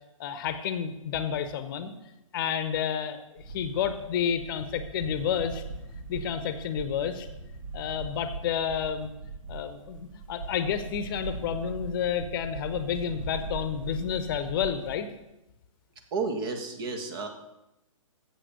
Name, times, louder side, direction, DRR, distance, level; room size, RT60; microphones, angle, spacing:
voice 1, 0.2-1.9 2.3-3.2 3.5-5.6 6.1-7.3 7.7-9.1 9.5-15.1, left 8 dB, 40° left, 10 dB, 0.9 m, -30 dB
sound 1, 3.4-14.9, right 3 dB, 70° right, 2.3 m, -40 dB
voice 2, 16.1-17.3, right 4 dB, 40° right, 5 dB, 1.7 m, -31 dB
8.5 x 7.5 x 6.8 m, 0.92 s
figure-of-eight pair, 125°, 18 cm